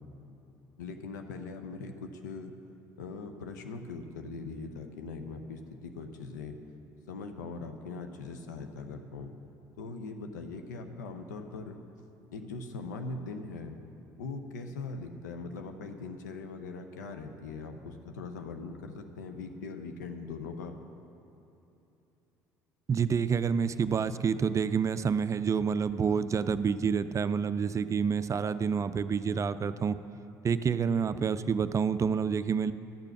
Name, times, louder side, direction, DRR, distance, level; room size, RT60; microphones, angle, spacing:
voice 1, 0.8-2.5 3.0-6.6 7.1-9.3 9.8-11.8 12.3-13.8 14.2-20.8, left 4 dB, 85° left, 6 dB, 0.7 m, -41 dB
voice 2, 22.9-30.0 30.4-32.7, right 6 dB, 35° right, 13 dB, 0.4 m, -28 dB
12.0 x 6.8 x 5.9 m, 3.0 s
hypercardioid pair, 60°, 9 cm